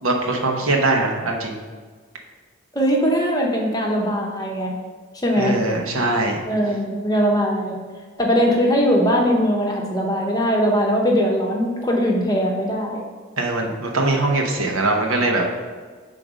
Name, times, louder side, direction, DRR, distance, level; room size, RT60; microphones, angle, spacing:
voice 1, 0.0-1.6 5.4-6.4 13.4-15.4, right 2 dB, 85° right, 1 dB, 1.0 m, -21 dB
voice 2, 2.7-4.8 5.1-5.6 6.5-7.8 8.2-13.0, equal, 20° left, -1 dB, 0.7 m, -20 dB
5.0 x 3.9 x 5.0 m, 1.5 s
head